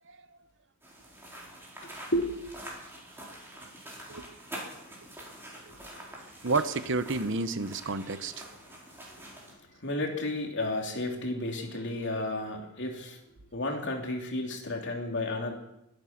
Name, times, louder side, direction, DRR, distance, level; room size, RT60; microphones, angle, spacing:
sound 1, 0.8-9.5, right 1 dB, 10° right, 4.4 m, -46 dB
voice 1, 5.7-6.1 9.8-13.2 13.5-15.5, left 1 dB, 60° left, 1 dB, 3.0 m, -32 dB
voice 2, 6.4-8.4, right 3 dB, 65° right, 11 dB, 1.0 m, -30 dB
22.5 x 9.0 x 5.9 m, 0.86 s
head